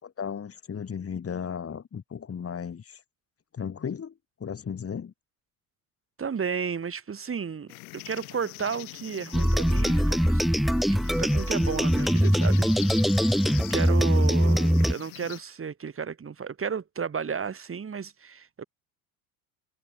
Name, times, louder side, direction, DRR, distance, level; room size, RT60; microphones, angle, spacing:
voice 1, 0.0-3.0 3.5-4.1 4.4-5.1, left 7 dB, 30° left, 4.0 m, -35 dB
voice 2, 6.2-10.5 11.0-13.4 13.7-18.6, right 6 dB, 30° right, 5.2 m, -33 dB
sound 1, 7.7-15.4, left 29 dB, 75° left, 2.2 m, -43 dB
sound 2, 9.3-14.9, equal, ahead, 0.4 m, -22 dB
hypercardioid pair, 75°, 43 cm